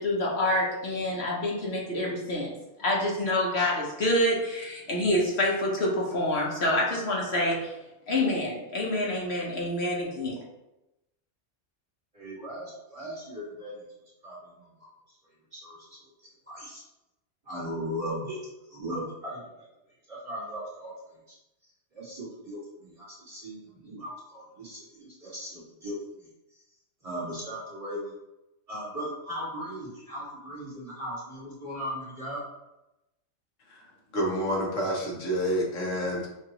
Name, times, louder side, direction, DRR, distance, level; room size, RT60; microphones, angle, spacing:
voice 1, 0.0-2.5 2.8-7.7 8.1-10.4, left 1 dB, 60° left, -3 dB, 1.1 m, -27 dB
voice 2, 12.1-13.9 14.2-14.6 15.5-15.8 16.2-16.8 17.4-18.4 18.7-19.4 20.1-20.9 21.3-21.4 21.9-26.0 27.0-28.1 28.7-32.4, equal, 30° right, -8 dB, 1.6 m, -37 dB
voice 3, 34.1-36.3, equal, 80° left, -2 dB, 1.4 m, -28 dB
5.9 x 2.6 x 2.9 m, 0.93 s
omnidirectional pair, 1.3 m